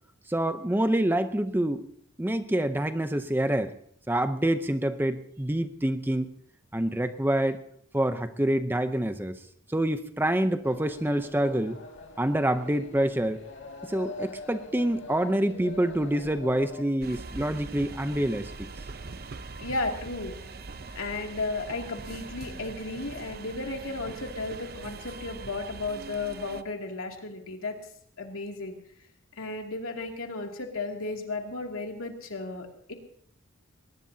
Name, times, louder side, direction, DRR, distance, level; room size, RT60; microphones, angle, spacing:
voice 1, 0.3-1.8 2.2-3.7 4.1-6.3 6.7-7.6 7.9-9.4 9.7-11.8 12.2-13.4 13.9-18.5, right 1 dB, 10° right, 10 dB, 0.7 m, -26 dB
sound 1, 10.6-16.8, left 2 dB, 60° left, 2.3 m, -43 dB
sound 2, 17.0-26.6, right 3 dB, 45° right, 0.7 m, -42 dB
voice 2, 19.6-20.3 20.9-27.8 28.2-28.8 29.4-32.9, left 3 dB, 85° left, 2 dB, 2.6 m, -34 dB
21.0 x 20.0 x 2.8 m, 0.64 s
head